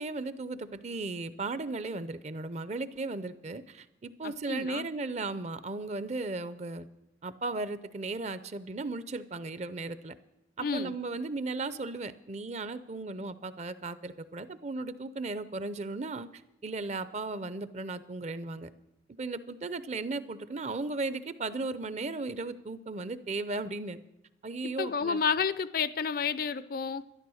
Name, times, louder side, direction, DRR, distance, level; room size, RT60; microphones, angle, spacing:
voice 1, 0.0-6.9 7.2-10.1 10.6-18.7 19.2-24.0 24.4-25.2, right 3 dB, 40° right, 14 dB, 0.6 m, -36 dB
voice 2, 4.2-4.9 10.6-11.0 24.6-27.0, left 6 dB, 55° left, 16 dB, 0.4 m, -31 dB
12.5 x 11.0 x 6.3 m, 0.92 s
head